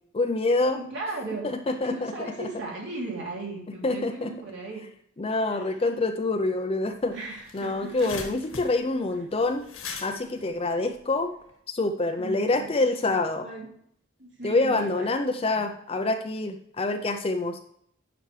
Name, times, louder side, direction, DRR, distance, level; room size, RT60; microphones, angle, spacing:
voice 1, 0.1-0.8 1.4-2.5 3.8-4.3 5.2-7.2 7.5-9.6 10.0-11.3 11.7-13.4 14.4-17.6, left 2 dB, 30° left, 6 dB, 0.5 m, -26 dB
voice 2, 0.7-4.8 5.5-5.8 7.1-8.1 12.2-12.7 13.1-13.7 14.2-15.1 15.4-15.6, right 3 dB, 60° right, -2 dB, 2.7 m, -37 dB
sound 1, 6.9-7.0 7.2-11.5, left 5 dB, 80° left, 1.6 m, -41 dB
10.0 x 6.0 x 3.2 m, 0.68 s
head